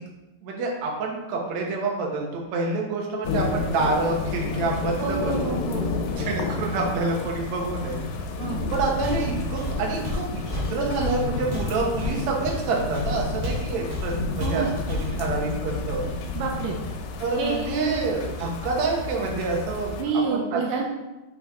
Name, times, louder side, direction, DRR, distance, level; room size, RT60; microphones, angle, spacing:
voice 1, 0.4-5.6 6.2-8.0 8.7-16.1 17.2-19.9 20.3-20.6, right 3 dB, 65° right, -1 dB, 1.8 m, -27 dB
sound 1, 3.2-20.0, left 4 dB, 85° left, 2.8 m, -30 dB
voice 2, 5.0-5.9 6.2-6.4 8.4-8.6 14.4-14.7 16.3-16.8 17.4-18.0 20.0-20.9, right 5 dB, 90° right, 0 dB, 1.8 m, -28 dB
Walk footsteps, 9.0-9.3 9.6-13.7 13.9-14.1 14.4-15.1, left 2 dB, 40° right, 2.5 m, -31 dB
6.6 x 5.4 x 3.5 m, 1.0 s
omnidirectional pair, 4.7 m